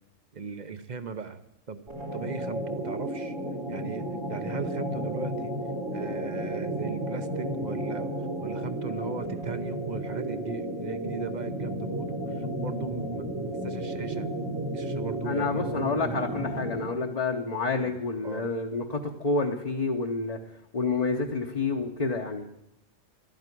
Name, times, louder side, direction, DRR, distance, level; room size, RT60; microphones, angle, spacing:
voice 1, 0.3-1.4 1.7-1.8 2.1-3.3 3.7-5.5 5.9-8.1 8.4-13.3 13.6-14.3 14.7-15.7 16.4-16.5 17.7-18.0 18.2-18.5, right 5 dB, 40° right, 10 dB, 0.8 m, -38 dB
sound 1, 1.9-17.0, right 1 dB, 85° right, 4.1 m, -33 dB
voice 2, 15.2-20.4 20.7-22.4, left 3 dB, 35° left, 1 dB, 0.9 m, -29 dB
12.5 x 9.1 x 9.8 m, 0.86 s
omnidirectional pair, 1.3 m